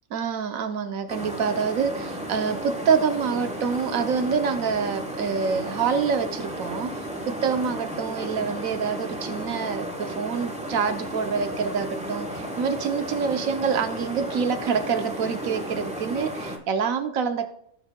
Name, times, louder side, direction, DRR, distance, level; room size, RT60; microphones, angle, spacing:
voice 1, 0.1-17.5, right 6 dB, 75° right, 8 dB, 1.1 m, -26 dB
sound 1, 1.1-16.6, right 1 dB, 5° right, 0.8 m, -34 dB
15.0 x 5.4 x 2.2 m, 0.70 s
omnidirectional pair, 1.5 m